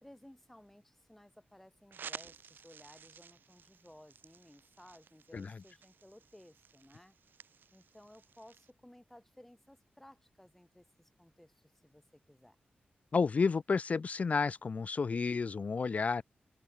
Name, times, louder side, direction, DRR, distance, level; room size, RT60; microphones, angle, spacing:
voice 1, 0.0-7.2 7.7-12.6, left 1 dB, 10° left, 3.8 m, -58 dB
sound 1, 1.9-8.7, right 7 dB, 75° right, 0.6 m, -53 dB
voice 2, 13.1-16.2, left 5 dB, 45° left, 0.3 m, -31 dB
open air
wide cardioid pair, 85°, 3 cm